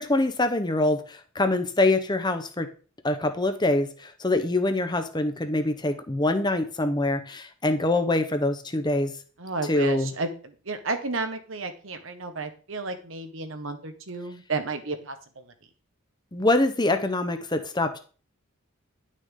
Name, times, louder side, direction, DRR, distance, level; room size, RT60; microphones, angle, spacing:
voice 1, 0.0-2.7 3.0-3.9 4.2-9.1 9.7-10.1 16.3-18.0, left 2 dB, 20° left, 8 dB, 0.9 m, -24 dB
voice 2, 9.4-15.4, right 3 dB, 60° right, 7 dB, 1.3 m, -32 dB
11.0 x 6.5 x 3.8 m, 0.39 s
head